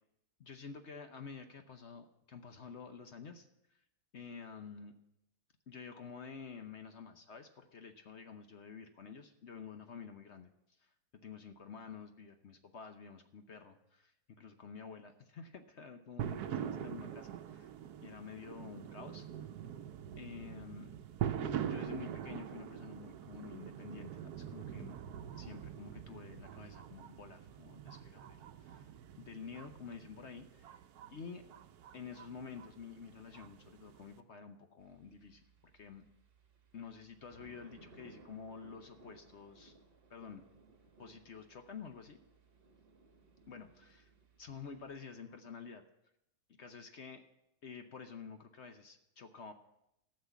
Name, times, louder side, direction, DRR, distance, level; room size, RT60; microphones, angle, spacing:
voice 1, 0.4-3.5 4.1-5.0 5.7-10.5 10.8-17.7 18.0-19.5 20.2-20.9 21.4-25.0 25.4-28.9 29.2-30.8 31.1-31.4 31.9-35.4 35.7-36.0 36.7-39.7 40.1-40.4 41.0-42.2 43.5-44.1 44.4-45.8 46.6-47.3 47.6-49.5, left 6 dB, 50° left, 7 dB, 1.0 m, -49 dB
sound 1, 16.2-34.2, right 9 dB, 75° right, 1.2 m, -44 dB
sound 2, 34.8-45.0, right 3 dB, 40° right, 1.4 m, -62 dB
13.5 x 6.6 x 8.2 m, 0.84 s
omnidirectional pair, 1.7 m